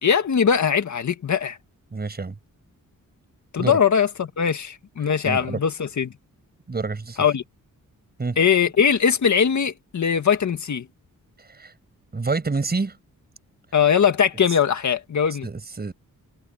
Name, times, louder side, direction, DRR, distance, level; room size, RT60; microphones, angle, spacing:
voice 1, 0.0-1.6 3.5-6.1 7.2-7.4 8.4-10.9 13.7-15.5, left 7 dB, 60° left, 1.9 m, -21 dB
voice 2, 1.9-2.4 3.6-3.8 5.2-5.6 6.7-7.2 8.2-8.4 11.5-11.7 12.1-13.0 15.4-15.9, right 3 dB, 30° right, 5.8 m, -27 dB
wide cardioid pair, 150°, 33 cm